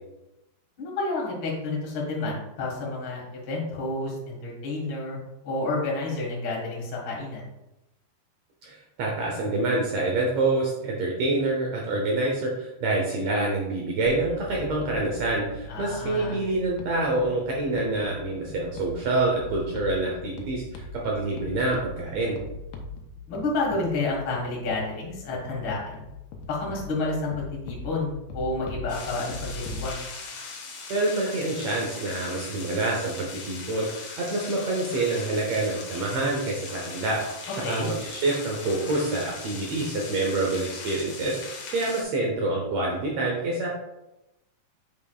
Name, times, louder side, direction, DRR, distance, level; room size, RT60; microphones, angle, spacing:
voice 1, 0.8-5.2 5.4-7.5 15.7-16.4 23.3-26.0 26.5-30.0 37.6-37.9, left 2 dB, 45° left, -4 dB, 2.0 m, -30 dB
voice 2, 8.6-22.4 30.9-43.7, right 2 dB, 90° right, -2 dB, 1.4 m, -27 dB
sound 1, 14.1-29.9, left 3 dB, 90° left, 2.6 m, -41 dB
sound 2, 28.9-42.0, left 4 dB, 65° left, 1.6 m, -39 dB
8.5 x 5.3 x 2.4 m, 0.93 s
omnidirectional pair, 4.4 m